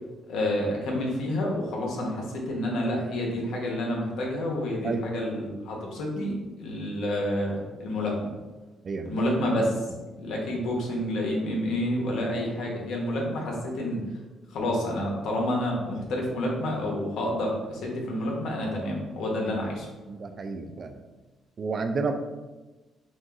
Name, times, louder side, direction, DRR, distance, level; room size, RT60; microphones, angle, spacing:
voice 1, 0.3-6.3 6.6-8.3 9.0-9.8 10.2-14.0 14.5-19.9, left 1 dB, 80° left, -1 dB, 1.1 m, -29 dB
voice 2, 8.8-9.2 19.5-19.6 20.1-21.0 21.6-22.1, right 4 dB, 45° right, 7 dB, 0.4 m, -31 dB
6.1 x 2.6 x 2.5 m, 1.2 s
cardioid pair, 90°, 0 cm